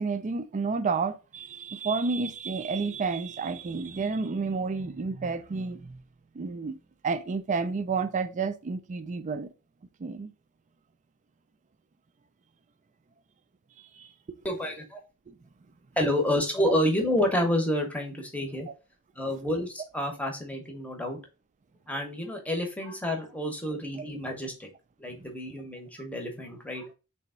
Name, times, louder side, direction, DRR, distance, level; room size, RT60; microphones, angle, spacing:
voice 1, 0.0-6.0 6.3-6.8 7.0-9.5 10.0-10.3 14.0-14.4 15.3-15.4, right 4 dB, 35° right, 0.4 m, -30 dB
voice 2, 14.4-15.0 16.0-18.7 19.2-21.2 21.9-24.7 25.0-26.9, left 1 dB, 5° left, 0.9 m, -29 dB
3.4 x 3.0 x 4.2 m
head